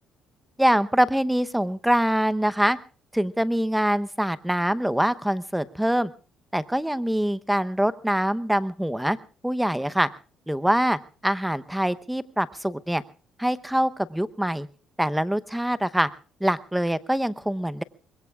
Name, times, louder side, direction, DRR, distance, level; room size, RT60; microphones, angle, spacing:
voice 1, 0.6-2.8 3.1-6.1 6.5-9.2 9.4-10.1 10.5-13.0 13.4-14.7 15.0-16.1 16.4-17.8, equal, 5° right, 13 dB, 0.8 m, -24 dB
25.0 x 21.5 x 2.4 m, 0.36 s
supercardioid pair, 80°, 0 cm